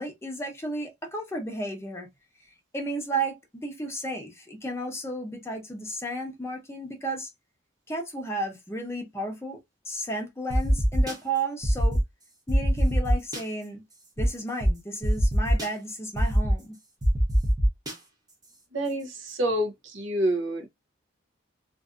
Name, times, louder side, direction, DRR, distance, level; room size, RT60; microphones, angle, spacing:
voice 1, 0.0-2.1 2.7-7.3 7.9-9.6 9.9-12.0 12.5-13.8 14.2-16.8, right 1 dB, 15° left, 0.7 m, -33 dB
sound 1, 10.5-11.1 11.6-12.0 12.5-13.4 14.2-14.3 14.6-14.7 15.0-15.7 16.2-16.5 17.0-17.9, equal, 20° right, 0.7 m, -22 dB
voice 2, 18.7-20.7, right 1 dB, 70° right, 0.7 m, -28 dB
2.6 x 2.5 x 2.3 m
head